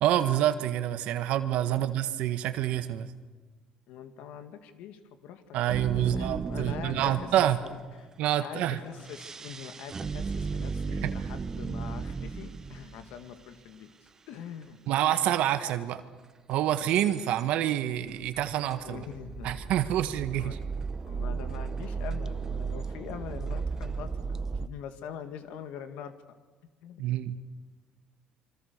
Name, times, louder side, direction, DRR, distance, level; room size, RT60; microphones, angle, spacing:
voice 1, 0.0-3.1 5.5-7.6 8.2-8.8 11.0-11.1 14.9-16.0 16.5-19.0 19.4-20.6 27.0-27.4, right 12 dB, 70° right, 9 dB, 1.6 m, -27 dB
voice 2, 3.9-7.3 7.6-8.1 8.4-13.9 14.3-14.8 18.8-19.6 20.4-20.6 21.1-26.2 26.8-27.0, left 8 dB, 80° left, 9 dB, 1.9 m, -43 dB
sound 1, 5.7-7.9 8.9-13.3 15.0-15.1 15.7-15.8 16.9-17.4 18.1-24.7, right 5 dB, 25° right, 0.7 m, -35 dB
27.0 x 24.5 x 6.7 m, 1.3 s
cardioid pair, 140°, 2 cm